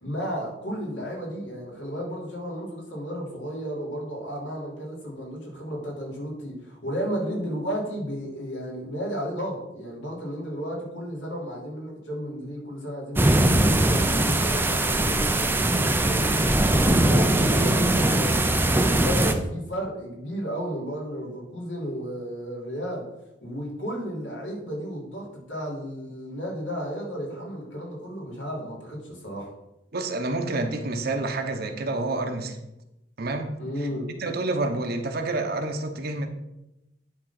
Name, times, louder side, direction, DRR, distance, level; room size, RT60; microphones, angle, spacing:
voice 1, 0.0-23.0 23.4-29.5 33.6-34.1, equal, 80° left, -3 dB, 3.2 m, -33 dB
sound 1, 13.2-19.3, right 1 dB, 10° right, 0.6 m, -21 dB
voice 2, 29.9-32.6 33.2-33.5 34.2-36.3, right 2 dB, 55° right, 5 dB, 1.0 m, -28 dB
10.0 x 3.8 x 5.9 m, 0.91 s
head